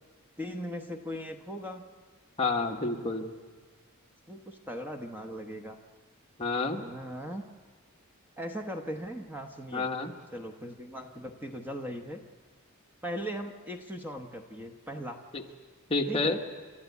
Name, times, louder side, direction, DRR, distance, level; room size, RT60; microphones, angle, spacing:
voice 1, 0.4-1.8 4.3-5.8 6.7-7.4 8.4-9.9 10.3-12.2 13.0-15.2 16.1-16.4, equal, 10° right, 5 dB, 1.0 m, -39 dB
voice 2, 2.4-3.3 6.4-6.8 9.7-10.1 15.3-15.4 15.9-16.4, left 3 dB, 25° left, 2 dB, 1.3 m, -29 dB
29.5 x 13.0 x 8.3 m, 1.5 s
head